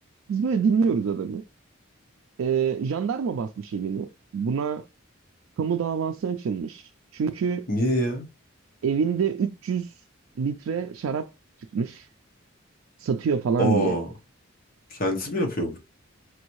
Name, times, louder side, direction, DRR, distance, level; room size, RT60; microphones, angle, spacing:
voice 1, 0.3-1.4 2.4-4.8 5.6-7.7 8.8-9.9 10.4-11.3 11.7-12.1 13.0-14.0, right 6 dB, 85° right, 0.3 m, -26 dB
voice 2, 7.7-8.3 13.6-14.1 14.9-15.8, equal, 45° left, 1.0 m, -25 dB
4.7 x 2.6 x 3.0 m
head